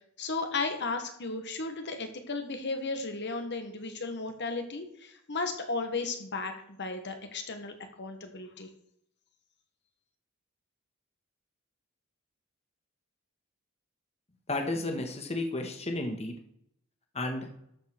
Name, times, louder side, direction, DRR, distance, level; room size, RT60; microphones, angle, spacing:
voice 1, 0.2-6.5 6.8-8.7, left 3 dB, 55° left, 6 dB, 1.5 m, -34 dB
voice 2, 14.5-16.3 17.1-17.5, left 2 dB, 30° left, 4 dB, 1.5 m, -32 dB
13.0 x 5.5 x 6.1 m, 0.71 s
head